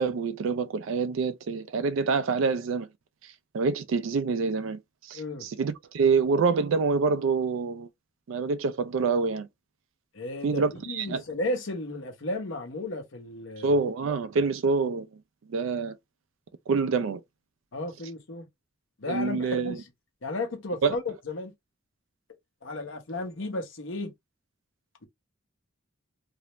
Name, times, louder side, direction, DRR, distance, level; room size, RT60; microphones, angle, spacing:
voice 1, 0.0-2.9 3.5-4.8 5.1-7.9 8.3-9.5 10.4-11.2 13.6-15.1 15.5-16.0 16.7-17.2 19.1-19.8 20.8-21.0, right 4 dB, 80° right, 0.4 m, -26 dB
voice 2, 5.1-5.5 10.1-13.8 17.7-18.5 19.0-19.9 20.2-21.5 22.6-24.1, left 2 dB, 75° left, 0.8 m, -34 dB
2.4 x 2.0 x 3.0 m
head